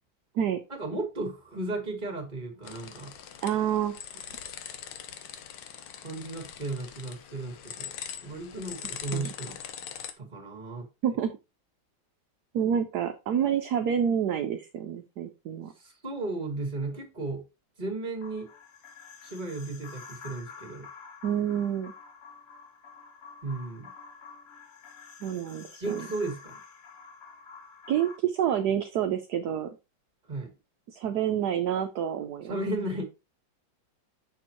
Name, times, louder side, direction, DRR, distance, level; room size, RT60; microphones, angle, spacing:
voice 1, 0.7-3.1 6.0-7.9 8.2-9.6 10.2-10.9 15.8-17.4 17.8-18.5 19.2-20.9 23.4-23.9 25.8-26.6 30.3-30.5 32.5-33.0, right 2 dB, 25° right, 3 dB, 2.0 m, -34 dB
sound 1, 2.6-10.1, left 9 dB, 70° left, 1.4 m, -42 dB
voice 2, 3.4-3.9 9.1-9.3 11.0-11.3 12.5-15.7 21.2-21.9 25.2-26.1 27.9-29.7 30.9-32.6, right 9 dB, 65° right, 6 dB, 1.1 m, -28 dB
sound 2, 18.2-28.2, left 5 dB, 50° left, 0.9 m, -48 dB
6.5 x 6.4 x 3.0 m, 0.26 s
omnidirectional pair, 2.1 m